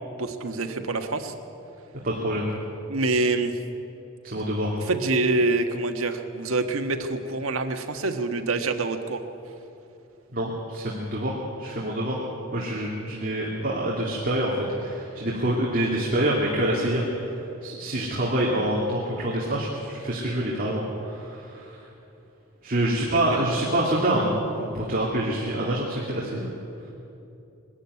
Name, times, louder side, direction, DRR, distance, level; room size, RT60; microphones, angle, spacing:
voice 1, 0.2-1.3 2.9-3.6 4.8-9.2, right 3 dB, 85° right, 6 dB, 1.5 m, -26 dB
voice 2, 2.0-2.5 4.2-4.8 10.3-21.8 22.6-26.5, right 1 dB, 40° right, -4 dB, 2.5 m, -26 dB
21.0 x 13.0 x 9.6 m, 2.8 s
head